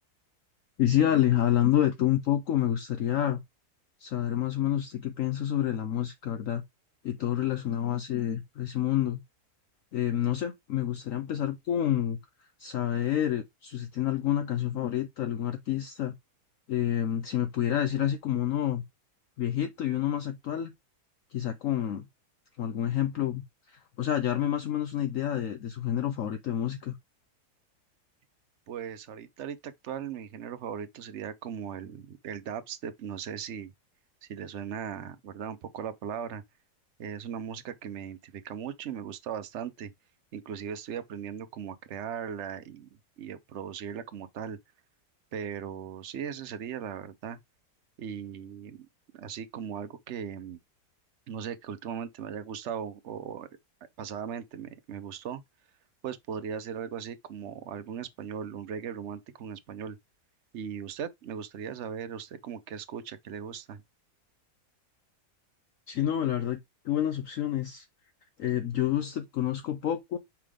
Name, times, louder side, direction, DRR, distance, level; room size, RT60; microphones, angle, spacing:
voice 1, 0.8-3.4 4.0-6.6 7.0-9.2 9.9-12.2 12.6-16.1 16.7-18.8 19.4-20.7 21.3-22.1 22.6-27.0 65.9-66.6 66.8-67.9 68.4-70.2, left 11 dB, 65° left, 1.0 m, -28 dB
voice 2, 28.7-33.7 34.3-36.4 37.0-39.9 40.3-42.9 43.2-44.6 45.3-47.4 48.0-48.9 49.1-50.6 51.3-53.5 54.0-55.4 56.0-60.0 60.5-63.8, right 8 dB, 55° right, 0.9 m, -38 dB
5.8 x 3.6 x 4.9 m
omnidirectional pair, 1.7 m